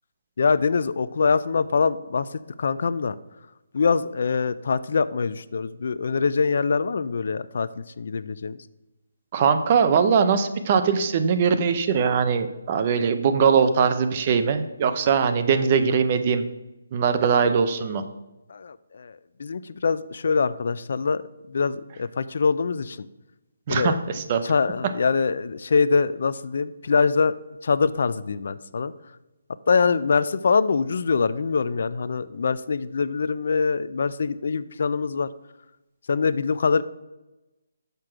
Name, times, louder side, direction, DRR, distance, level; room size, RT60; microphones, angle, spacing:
voice 1, 0.4-3.2 3.7-8.6 18.5-21.2 21.5-23.1 23.7-24.0 24.4-27.3 27.6-28.9 29.7-35.3 36.1-36.8, left 5 dB, 55° left, 16 dB, 0.3 m, -24 dB
voice 2, 9.3-16.4 16.9-18.0 23.7-24.4, right 6 dB, 25° right, 9 dB, 0.5 m, -21 dB
6.7 x 5.9 x 4.8 m, 1.0 s
hypercardioid pair, 170°, 0 cm